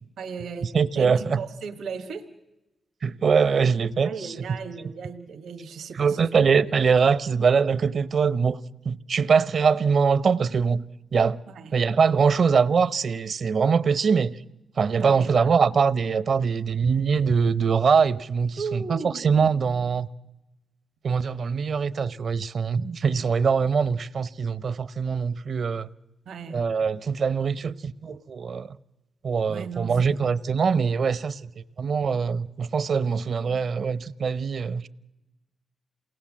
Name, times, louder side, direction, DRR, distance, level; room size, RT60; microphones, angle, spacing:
voice 1, 0.2-2.3 4.0-6.3 6.6-6.7 11.5-11.7 15.0-15.5 18.6-19.4 26.2-26.6 29.5-30.2, right 5 dB, 85° right, 1.5 m, -36 dB
voice 2, 0.7-1.4 3.0-4.3 6.0-8.6 8.8-10.8 11.1-11.4 11.7-14.4 14.8-20.1 21.0-25.9 26.5-28.8 29.2-31.5 31.8-34.9, right 5 dB, 65° right, 0.7 m, -23 dB
28.0 x 18.5 x 7.4 m
cardioid pair, 60°, 0 cm